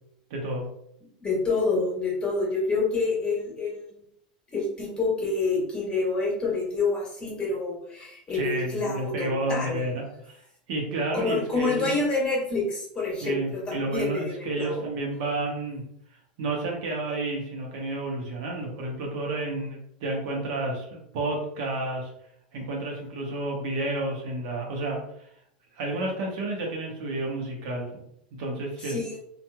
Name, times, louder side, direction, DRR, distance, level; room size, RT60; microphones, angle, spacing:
voice 1, 0.3-0.7 8.3-10.4 10.7-12.0 13.2-15.8 16.4-22.1 22.5-25.0 25.8-28.0 28.3-29.0, right 2 dB, 65° right, -1 dB, 0.9 m, -30 dB
voice 2, 1.2-3.9 4.5-9.8 11.1-14.8 28.8-29.2, left 3 dB, 20° left, -3 dB, 1.4 m, -27 dB
2.8 x 2.5 x 2.3 m, 0.71 s
hypercardioid pair, 110°, 4 cm